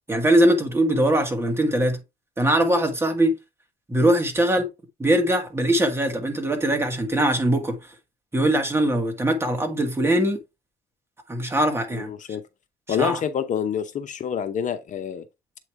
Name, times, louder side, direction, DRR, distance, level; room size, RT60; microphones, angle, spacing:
voice 1, 0.1-2.0 2.4-3.4 3.9-4.7 5.0-7.8 8.3-10.4 11.3-12.1 12.9-13.2, right 1 dB, 15° right, 1.8 m, -21 dB
voice 2, 11.9-12.4 12.9-15.2, left 8 dB, 45° left, 0.8 m, -27 dB
8.0 x 3.1 x 4.6 m
cardioid pair, 110°, 17 cm